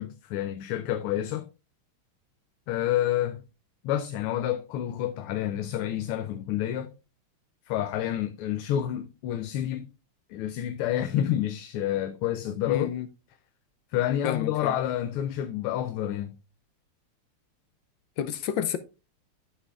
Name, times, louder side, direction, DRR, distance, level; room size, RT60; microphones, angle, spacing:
voice 1, 0.0-1.5 2.7-3.4 3.8-6.9 7.7-9.9 10.3-12.9 13.9-16.4, left 11 dB, 90° left, 1.5 m, -29 dB
voice 2, 12.7-13.1 14.2-14.7 18.2-18.8, left 9 dB, 75° left, 1.2 m, -30 dB
12.0 x 5.6 x 2.4 m
omnidirectional pair, 2.3 m